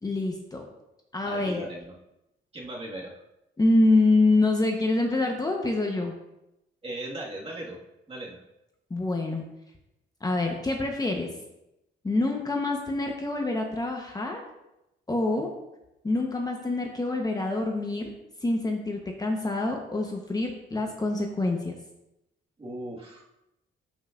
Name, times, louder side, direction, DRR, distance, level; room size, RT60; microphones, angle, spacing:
voice 1, 0.0-0.7 1.1-1.6 3.6-6.1 8.9-9.4 10.2-11.3 12.0-14.4 15.1-15.5 16.0-18.1 18.4-21.7, left 2 dB, 20° left, 1 dB, 1.0 m, -26 dB
voice 2, 1.3-2.0 2.5-3.2 6.8-7.8 8.1-8.4 22.6-23.3, right 1 dB, 30° right, -3 dB, 1.9 m, -38 dB
12.5 x 5.6 x 2.6 m, 0.90 s
cardioid pair, 90°, 20 cm